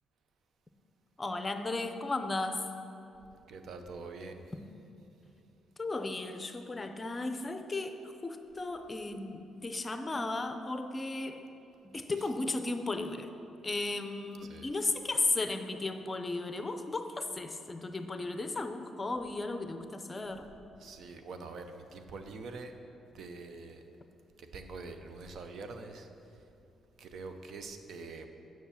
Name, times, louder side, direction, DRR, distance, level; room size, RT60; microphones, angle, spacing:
voice 1, 1.2-2.7 5.8-11.4 11.9-13.3 13.6-20.5, left 2 dB, 25° left, 8 dB, 0.6 m, -35 dB
voice 2, 3.5-4.4 12.2-12.3 14.4-14.7 20.8-22.7 23.1-23.8 24.4-26.1 27.0-28.3, right 3 dB, 65° right, 7 dB, 0.7 m, -45 dB
7.1 x 6.2 x 7.1 m, 2.8 s
cardioid pair, 90°, 0 cm